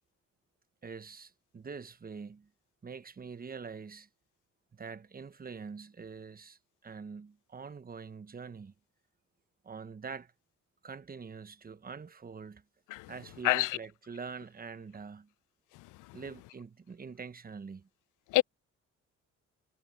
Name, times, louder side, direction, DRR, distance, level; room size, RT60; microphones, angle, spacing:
voice 1, 0.8-2.5 2.8-4.1 4.7-8.7 9.6-10.3 10.8-12.6 13.1-15.3 16.1-17.9, right 5 dB, 30° right, 1.1 m, -45 dB
voice 2, 13.4-13.8 18.3-18.4, left 19 dB, 90° left, 0.5 m, -26 dB
cardioid pair, 90°, 30 cm